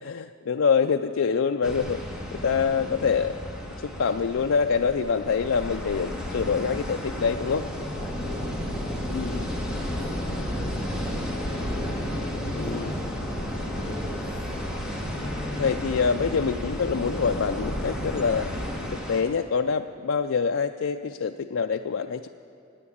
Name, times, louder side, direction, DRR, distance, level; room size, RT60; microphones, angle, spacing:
voice 1, 0.0-2.0 2.3-3.4 3.8-7.6 9.1-9.5 12.6-12.9 15.6-18.5 18.9-22.3, left 6 dB, 90° left, 6 dB, 0.4 m, -25 dB
sound 1, 1.6-19.2, equal, 5° right, 2.1 m, -32 dB
voice 2, 2.4-2.9 7.1-7.3 7.8-11.0 11.7-12.1 12.5-13.0 13.8-14.4 15.0-15.7 16.2-16.3, left 1 dB, 25° left, -11 dB, 3.7 m, -41 dB
17.0 x 9.4 x 8.6 m, 2.5 s
head